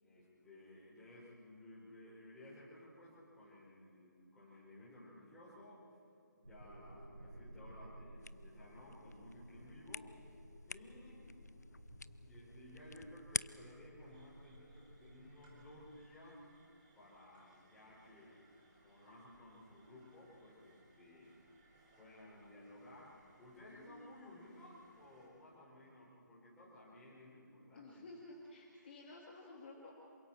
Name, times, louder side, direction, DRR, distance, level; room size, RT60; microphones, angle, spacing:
voice 1, 0.0-5.8 6.4-10.4 10.7-11.3 12.2-16.4 16.9-18.4 18.8-21.3 22.0-23.1 23.4-28.1, left 1 dB, 5° left, -9 dB, 5.9 m, -57 dB
sound 1, 6.4-16.1, equal, 75° right, 4.9 m, -56 dB
sound 2, 8.2-13.9, left 4 dB, 60° left, 0.5 m, -49 dB
sound 3, 14.0-25.3, right 2 dB, 25° right, 5.0 m, -70 dB
voice 2, 27.7-29.9, left 2 dB, 35° left, -3 dB, 2.6 m, -53 dB
27.5 x 25.0 x 4.6 m, 2.5 s
figure-of-eight pair, 150°, 10 cm